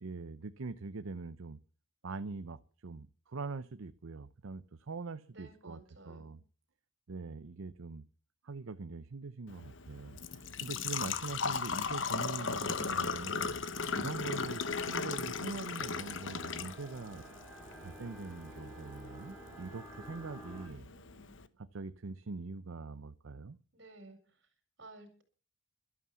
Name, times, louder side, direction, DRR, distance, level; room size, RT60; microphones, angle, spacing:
voice 1, 0.0-1.6 2.0-5.8 6.0-6.4 7.1-8.0 8.4-13.6 13.9-17.2 17.8-20.9 21.6-23.6, right 3 dB, 75° right, 0.6 m, -43 dB
voice 2, 5.3-6.4 20.5-21.3 23.7-24.2 24.8-25.2, right 2 dB, 60° right, 4.6 m, -55 dB
Engine / Trickle dribble / Fill (with liquid), 9.5-21.5, left 5 dB, 65° left, 1.0 m, -38 dB
sound 1, 13.0-20.7, equal, 10° right, 3.7 m, -53 dB
12.5 x 11.0 x 7.0 m
head